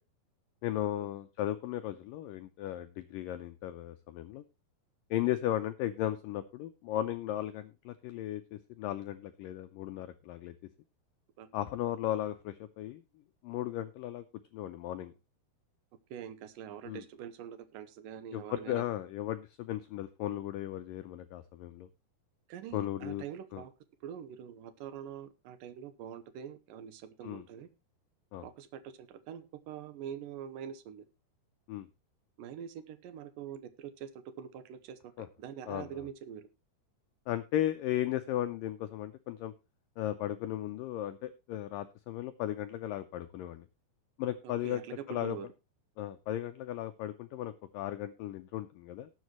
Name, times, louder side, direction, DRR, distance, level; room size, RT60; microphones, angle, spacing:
voice 1, 0.6-4.4 5.1-10.6 11.5-13.0 13.4-14.2 14.5-15.1 16.8-17.0 18.3-21.9 22.7-23.2 23.5-23.6 27.2-27.5 28.3-28.4 31.7-31.9 35.2-35.3 35.7-35.9 37.3-39.5 40.0-43.7 44.2-44.8 45.1-45.4 46.0-49.1, left 12 dB, 85° left, 9 dB, 1.9 m, -36 dB
voice 2, 16.1-18.8 22.5-23.7 24.0-27.7 28.4-31.1 32.4-36.5 44.4-45.5, right 9 dB, 70° right, 12 dB, 2.3 m, -44 dB
19.0 x 7.6 x 3.0 m, 0.26 s
omnidirectional pair, 4.7 m